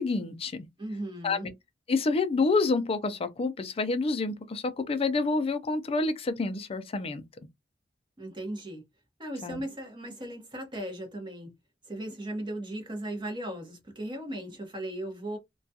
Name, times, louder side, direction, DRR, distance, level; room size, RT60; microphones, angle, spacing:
voice 1, 0.0-0.7 1.2-1.5 1.9-7.2 9.4-9.6, left 3 dB, 35° left, 0.4 m, -28 dB
voice 2, 0.8-1.5 8.2-8.8 9.2-11.5 11.9-15.4, right 1 dB, 25° right, 0.9 m, -37 dB
2.3 x 2.3 x 2.6 m
head